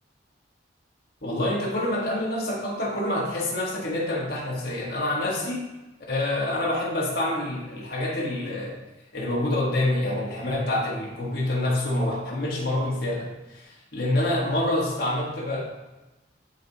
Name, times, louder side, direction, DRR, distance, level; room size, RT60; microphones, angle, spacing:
voice 1, 1.2-5.7 6.1-8.8 9.1-15.6, left 1 dB, 55° left, -4 dB, 1.6 m, -27 dB
11.5 x 4.2 x 3.0 m, 1.1 s
head